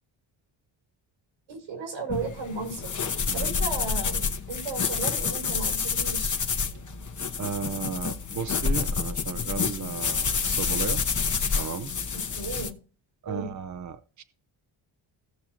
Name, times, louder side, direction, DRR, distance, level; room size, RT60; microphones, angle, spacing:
voice 1, 1.5-2.9 3.3-6.4 12.1-12.8 13.2-13.5, right 4 dB, 85° right, 4 dB, 5.0 m, -35 dB
sound 1, 2.1-12.7, left 5 dB, 40° left, 1.1 m, -28 dB
voice 2, 7.4-11.1 11.6-11.9 13.2-14.2, right 6 dB, 35° right, 10 dB, 0.7 m, -34 dB
17.0 x 6.1 x 3.0 m, 0.38 s
cardioid pair, 75°, 48 cm